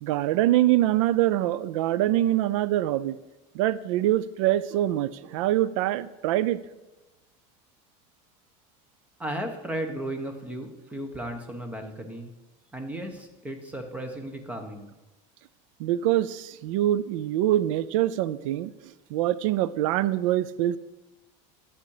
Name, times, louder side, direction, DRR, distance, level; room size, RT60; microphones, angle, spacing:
voice 1, 0.0-3.2 3.5-6.6 15.8-20.8, right 13 dB, 85° right, 17 dB, 0.5 m, -24 dB
voice 2, 9.2-12.3 12.7-14.9, right 1 dB, 10° right, 5 dB, 1.5 m, -35 dB
11.5 x 8.8 x 5.0 m, 1.1 s
cardioid pair, 150°, 16 cm